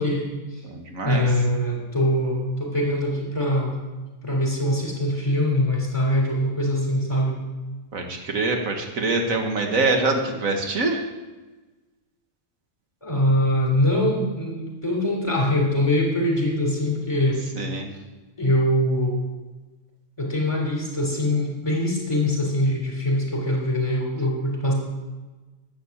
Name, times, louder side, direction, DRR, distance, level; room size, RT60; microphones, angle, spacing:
voice 1, 0.0-0.6 1.0-3.7 4.2-7.4 13.0-17.4 18.4-19.2 20.2-24.7, left 1 dB, 20° left, -1 dB, 3.5 m, -23 dB
voice 2, 0.6-1.2 7.9-11.0 17.6-17.9, right 3 dB, 80° right, 3 dB, 1.9 m, -24 dB
11.5 x 8.5 x 7.2 m, 1.2 s
omnidirectional pair, 1.4 m